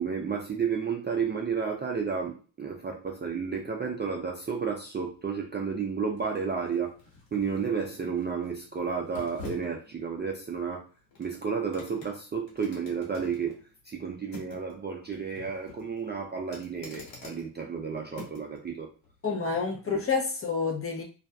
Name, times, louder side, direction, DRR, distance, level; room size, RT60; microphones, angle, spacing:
voice 1, 0.0-6.9 7.3-10.9 11.2-13.6 13.8-18.9 19.9-20.0, right 6 dB, 25° right, 0 dB, 0.3 m, -32 dB
sound 1, 3.9-18.6 19.0-19.2, left 3 dB, 65° left, 1.1 m, -50 dB
voice 2, 19.2-21.0, left 5 dB, 30° left, 2 dB, 0.6 m, -28 dB
2.6 x 2.3 x 2.2 m, 0.35 s
cardioid pair, 85°, 48 cm